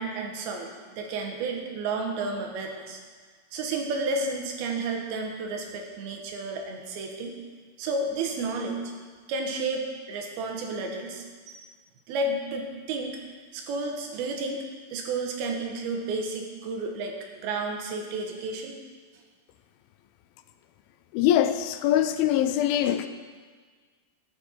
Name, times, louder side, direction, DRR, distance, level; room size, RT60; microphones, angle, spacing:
voice 1, 0.0-3.0 3.5-7.3 7.8-8.8 9.3-11.7 12.1-13.2 13.5-14.6 14.9-17.1 17.4-18.8, right 3 dB, 85° right, 2 dB, 2.9 m, -31 dB
voice 2, 21.1-23.1, left 11 dB, 80° left, 10 dB, 2.3 m, -23 dB
11.5 x 7.7 x 4.3 m, 1.5 s
omnidirectional pair, 4.3 m